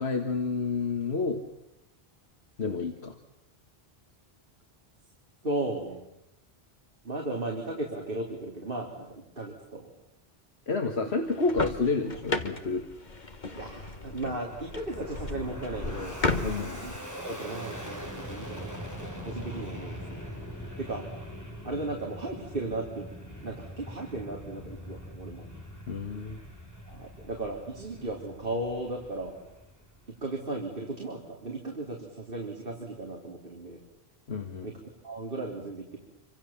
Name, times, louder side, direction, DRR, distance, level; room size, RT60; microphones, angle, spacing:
voice 1, 0.0-1.4 2.6-3.2 10.7-12.8 16.4-16.8 25.9-26.4 34.3-34.7, left 4 dB, 80° left, 4 dB, 2.0 m, -29 dB
voice 2, 5.4-6.0 7.0-9.9 13.5-16.9 17.2-20.2 20.8-21.1 21.6-23.1 23.4-25.5 26.9-29.4 30.1-33.8 34.6-34.8 35.0-36.0, right 2 dB, 55° right, 0 dB, 3.5 m, -36 dB
sound 1, 11.3-17.0, left 3 dB, 45° left, 1.7 m, -34 dB
Fixed-wing aircraft airplane, 13.7-30.2, equal, 15° left, 5.4 m, -42 dB
28.0 x 25.5 x 7.3 m, 0.90 s
omnidirectional pair, 1.1 m